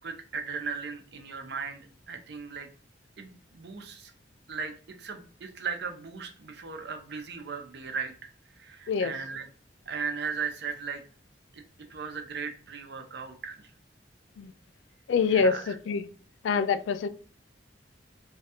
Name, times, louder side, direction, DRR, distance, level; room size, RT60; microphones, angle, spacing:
voice 1, 0.0-2.7 3.2-4.1 4.5-4.7 5.0-8.3 8.6-9.5 9.9-11.0 11.5-11.6 11.9-13.6 15.3-15.8, right 5 dB, 60° right, 6 dB, 0.6 m, -37 dB
voice 2, 15.1-16.0 16.4-17.1, left 5 dB, 80° left, 12 dB, 0.3 m, -25 dB
3.1 x 2.3 x 2.8 m, 0.39 s
head